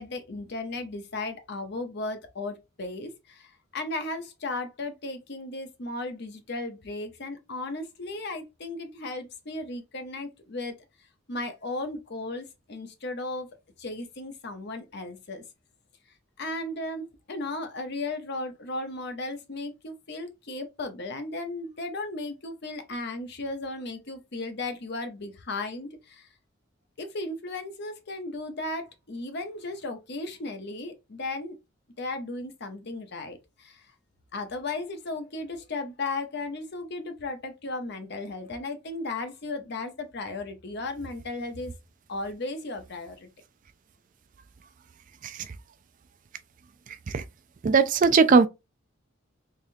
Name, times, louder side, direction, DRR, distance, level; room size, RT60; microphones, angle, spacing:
voice 1, 0.0-10.7 11.3-13.5 13.8-15.4 16.4-26.3 27.0-31.5 32.0-33.8 34.3-41.7 42.1-43.3, left 2 dB, 55° left, 0.8 m, -35 dB
voice 2, 47.6-48.5, right 5 dB, 40° right, 0.3 m, -18 dB
3.5 x 3.3 x 2.6 m
head